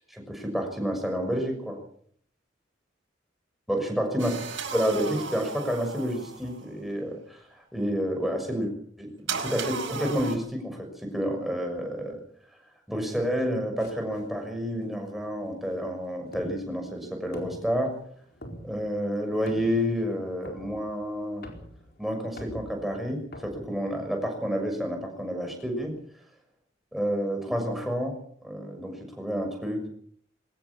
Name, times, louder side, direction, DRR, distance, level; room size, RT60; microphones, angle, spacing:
voice 1, 0.2-1.8 3.7-4.4 4.7-7.4 7.7-8.7 9.0-9.1 9.4-12.2 12.9-18.0 18.6-21.4 22.0-26.0 26.9-29.9, equal, ahead, 3 dB, 6.3 m, -29 dB
sound 1, 4.2-6.7 9.3-10.4, right 5 dB, 80° right, 4.9 m, -35 dB
sound 2, 13.8-24.5, equal, 55° left, 4.5 m, -48 dB
22.5 x 19.0 x 7.2 m, 0.62 s
head